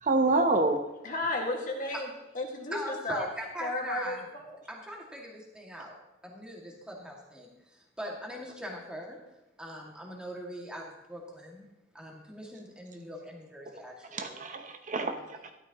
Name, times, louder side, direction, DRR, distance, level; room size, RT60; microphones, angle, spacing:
voice 1, 0.0-0.8 14.1-15.5, right 2 dB, 40° right, 5 dB, 0.8 m, -27 dB
voice 2, 1.0-2.1 2.3-3.3 3.6-4.5, left 2 dB, 45° left, 0 dB, 1.9 m, -33 dB
voice 3, 2.7-4.2 4.7-5.9 6.2-9.2 9.6-11.7 11.9-14.4, equal, 5° right, -2 dB, 2.1 m, -41 dB
13.0 x 12.0 x 3.0 m, 0.97 s
head